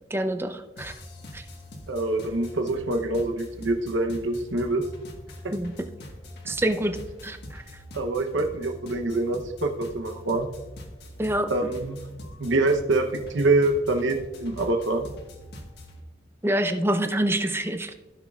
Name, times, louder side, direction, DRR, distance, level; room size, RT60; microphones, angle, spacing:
voice 1, 0.1-0.9 1.3-1.4 5.5-5.7 6.5-7.0 7.2-7.6 11.2-11.5 16.4-17.9, right 1 dB, 15° right, 7 dB, 0.5 m, -26 dB
sound 1, 0.8-16.0, left 1 dB, 60° left, 1.4 m, -43 dB
voice 2, 1.9-4.9 5.4-5.5 7.9-10.5 11.5-12.0 12.4-15.1, right 2 dB, 80° right, 5 dB, 0.8 m, -25 dB
16.0 x 6.2 x 2.4 m, 1.1 s
head